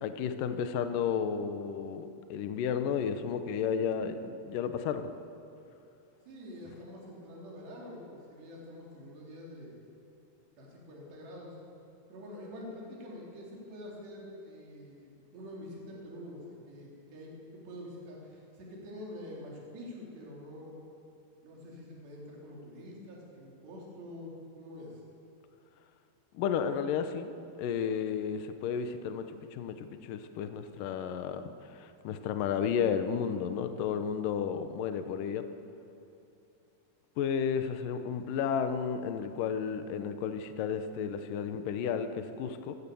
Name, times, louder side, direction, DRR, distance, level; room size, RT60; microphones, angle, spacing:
voice 1, 0.0-5.1 26.3-27.3 27.6-35.4 37.2-42.8, left 7 dB, 80° left, 8 dB, 1.9 m, -32 dB
voice 2, 6.3-9.7 10.6-11.5 12.1-20.8 21.4-25.0, left 1 dB, 65° right, -3 dB, 6.0 m, -46 dB
27.5 x 16.5 x 7.0 m, 2.7 s
omnidirectional pair, 5.3 m